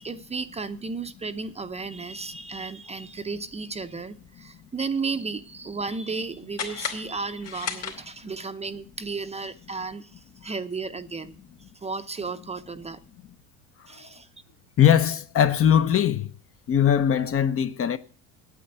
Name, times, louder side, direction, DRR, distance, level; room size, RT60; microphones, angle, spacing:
voice 1, 0.0-11.4 11.8-13.0 13.9-14.3, right 4 dB, 20° right, 0.6 m, -34 dB
sound 1, 6.5-8.5, left 7 dB, 65° left, 2.8 m, -35 dB
voice 2, 14.8-16.3 16.7-18.0, left 9 dB, 40° left, 0.8 m, -20 dB
8.7 x 8.7 x 8.0 m
supercardioid pair, 105°, 35 cm